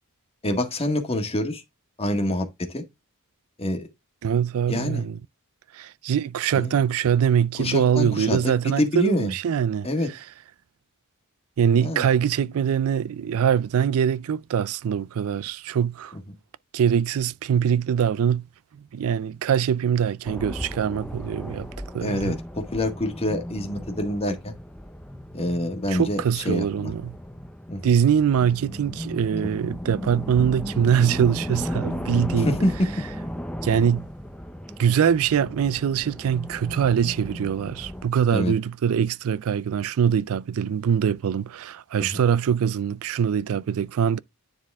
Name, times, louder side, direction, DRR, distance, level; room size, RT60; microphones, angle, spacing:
voice 1, 0.4-1.6 2.0-2.8 3.6-3.9 4.7-5.0 6.5-6.7 7.6-9.3 9.8-10.1 11.8-12.1 22.0-24.5 25.3-26.9 27.7-27.9 32.4-32.7 38.3-38.5 42.0-42.2, left 1 dB, 25° left, 1.6 m, -26 dB
voice 2, 4.2-5.2 5.7-10.2 11.6-16.1 16.7-18.5 18.7-21.7 21.9-22.4 25.9-27.1 27.8-32.6 33.6-34.1 34.8-44.2, right 8 dB, 65° right, 0.4 m, -23 dB
sound 1, 20.2-38.1, equal, 5° left, 0.7 m, -35 dB
9.8 x 4.1 x 3.5 m
head